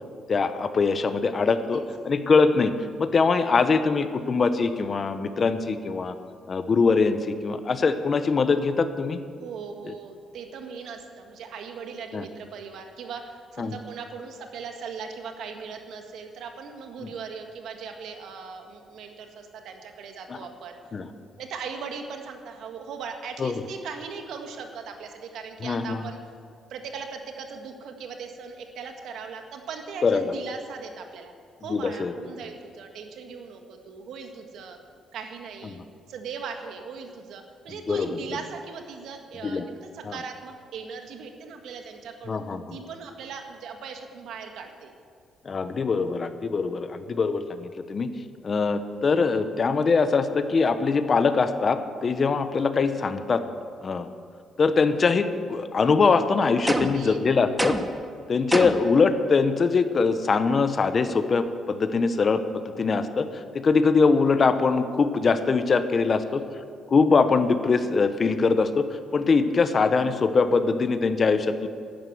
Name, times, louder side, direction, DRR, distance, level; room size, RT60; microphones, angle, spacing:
voice 1, 0.3-2.7 3.0-6.1 6.5-9.2 9.8-9.9 12.1-12.2 13.6-13.7 20.3-20.4 20.9-21.1 23.4-23.6 25.6-26.0 30.0-30.3 31.7-32.1 37.9-38.1 39.4-39.6 40.0-40.1 42.3-42.7 45.4-48.1 48.4-53.4 53.8-54.1 54.6-57.8 58.3-66.4 66.9-68.9 69.1-71.7, left 4 dB, 40° left, 10 dB, 0.9 m, -22 dB
voice 2, 9.4-20.8 21.4-26.2 26.7-31.3 31.6-34.8 35.1-35.8 36.1-42.4 42.7-44.9 56.7-57.2 66.2-66.7, right 5 dB, 75° right, 5 dB, 1.7 m, -39 dB
sound 1, 56.7-57.1 57.6-58.0 58.5-58.9, right 1 dB, 10° right, 1.0 m, -26 dB
12.0 x 10.5 x 7.9 m, 2.2 s
cardioid pair, 90°, 0 cm